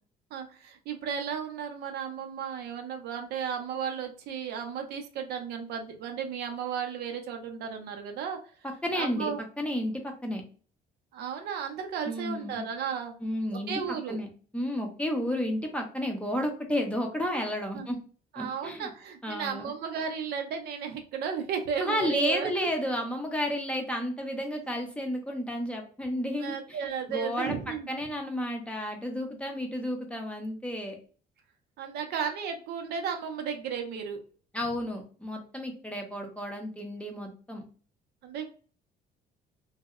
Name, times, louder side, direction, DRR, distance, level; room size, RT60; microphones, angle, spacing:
voice 1, 0.3-8.4 8.9-9.4 11.1-13.2 13.5-14.2 17.7-17.9 18.3-22.7 26.4-27.9 31.8-34.2 38.2-38.5, right 7 dB, 70° right, 5 dB, 0.5 m, -34 dB
voice 2, 8.8-10.4 12.1-12.7 13.2-14.3 14.5-18.0 18.4-18.9 19.2-19.7 21.8-31.0 34.5-37.6, equal, 5° left, 2 dB, 0.5 m, -32 dB
2.6 x 2.0 x 2.3 m, 0.40 s
cardioid pair, 110°, 17 cm